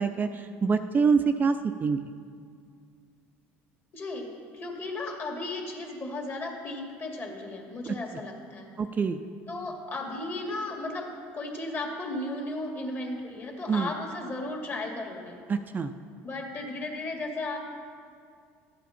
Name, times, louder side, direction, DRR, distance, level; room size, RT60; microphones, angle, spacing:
voice 1, 0.0-2.0 7.9-8.0 8.8-9.2 13.7-13.9 15.5-15.9, right 5 dB, 30° right, 8 dB, 0.4 m, -25 dB
voice 2, 3.9-4.3 4.5-8.7 9.5-11.1 11.3-15.4 16.2-17.6, left 2 dB, 35° left, 1 dB, 2.1 m, -35 dB
13.0 x 8.3 x 4.3 m, 2.2 s
supercardioid pair, 95°, 6 cm